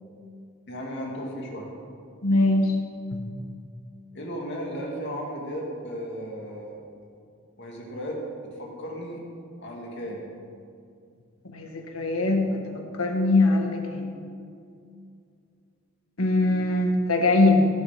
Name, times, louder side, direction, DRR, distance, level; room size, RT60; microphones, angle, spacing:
voice 1, 0.7-1.7 4.1-6.8 7.6-9.2 9.6-10.3, equal, 55° left, -1 dB, 2.3 m, -35 dB
voice 2, 2.2-2.7 11.4-12.6 13.0-14.1 16.2-17.7, left 2 dB, 85° left, 3 dB, 1.6 m, -22 dB
15.5 x 7.2 x 5.9 m, 2.4 s
head